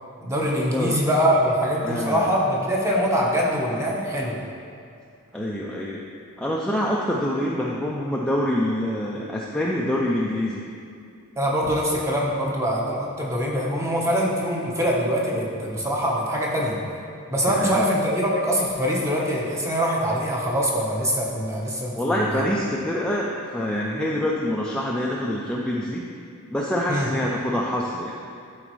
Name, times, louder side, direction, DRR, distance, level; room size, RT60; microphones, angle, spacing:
voice 1, 0.2-4.4 11.4-16.8 17.3-22.5 26.9-27.1, equal, 15° right, -3 dB, 1.0 m, -23 dB
voice 2, 0.7-1.1 1.8-2.3 5.3-6.0 6.4-10.7 17.5-17.8 21.9-26.1 26.5-28.1, left 1 dB, 5° left, -4 dB, 0.4 m, -26 dB
12.0 x 4.4 x 3.1 m, 2.4 s
head